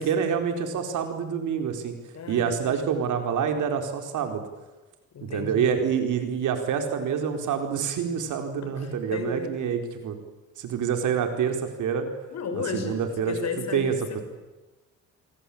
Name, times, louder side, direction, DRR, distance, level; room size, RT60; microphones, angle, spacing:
voice 1, 0.0-1.9 2.3-4.4 5.2-10.2 10.6-12.1 12.5-13.3 13.7-13.9, right 7 dB, 80° right, 6 dB, 4.6 m, -27 dB
voice 2, 2.1-2.9 5.1-5.7 8.6-9.5 12.3-13.0 13.3-14.2, left 5 dB, 60° left, 7 dB, 6.3 m, -33 dB
28.5 x 23.5 x 8.8 m, 1.1 s
cardioid pair, 90°, 30 cm